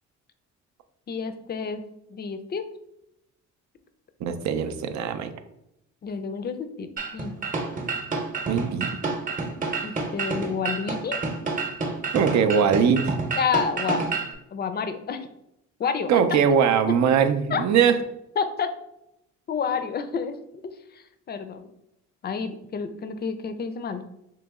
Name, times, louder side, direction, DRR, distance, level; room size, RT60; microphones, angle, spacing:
voice 1, 1.1-1.8 2.1-2.6 6.0-6.9 7.1-7.4 9.8-11.2 13.4-14.0 14.5-15.3 15.8-16.1 17.5-17.6 18.4-18.7 19.5-20.4 20.9-21.7 22.2-24.0, left 6 dB, 35° left, 9 dB, 0.4 m, -29 dB
voice 2, 4.2-5.3 8.5-9.5 12.1-13.2 16.1-17.9, right 7 dB, 65° right, 9 dB, 0.5 m, -21 dB
sound 1, 7.0-14.3, right 3 dB, 25° right, 0.8 m, -29 dB
3.1 x 2.9 x 3.5 m, 0.83 s
cardioid pair, 90°, 30 cm